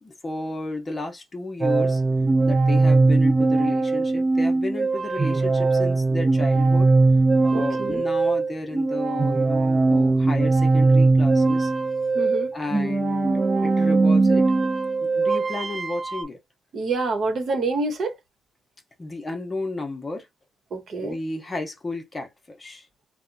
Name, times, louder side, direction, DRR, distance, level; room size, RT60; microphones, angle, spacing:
voice 1, 0.0-2.0 2.5-6.9 7.4-11.7 12.5-14.5 15.0-16.4 19.0-20.3 21.0-22.9, left 2 dB, 25° left, 0.7 m, -32 dB
sound 1, 1.6-16.2, right 3 dB, 25° right, 0.3 m, -20 dB
voice 2, 7.5-8.0 12.1-12.5 16.7-18.2 20.7-21.2, right 3 dB, 55° right, 0.9 m, -27 dB
2.8 x 2.1 x 2.5 m
cardioid pair, 90°, 0 cm